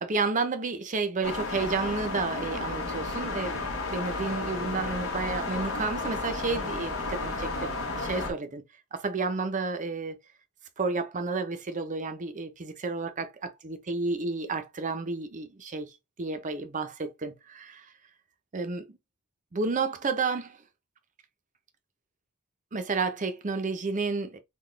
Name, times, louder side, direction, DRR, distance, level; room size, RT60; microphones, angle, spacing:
voice 1, 0.0-8.6 8.9-10.2 10.8-15.9 16.2-17.9 18.5-19.0 19.5-20.6 22.7-24.4, right 4 dB, 35° right, 0.6 m, -31 dB
sound 1, 1.2-8.3, left 3 dB, 65° left, 1.2 m, -32 dB
3.9 x 2.3 x 3.2 m
head